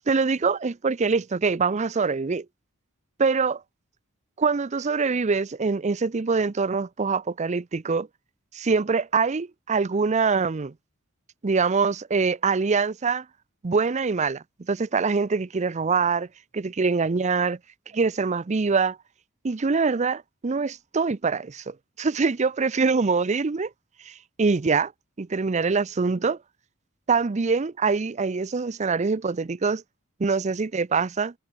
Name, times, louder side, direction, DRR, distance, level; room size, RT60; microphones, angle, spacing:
voice 1, 0.1-2.5 3.2-3.6 4.4-8.1 8.5-10.7 11.4-13.2 13.6-16.3 16.5-17.6 17.9-19.0 19.4-23.7 24.1-24.9 25.2-26.4 27.1-29.8 30.2-31.3, right 4 dB, 35° right, 0.5 m, -24 dB
head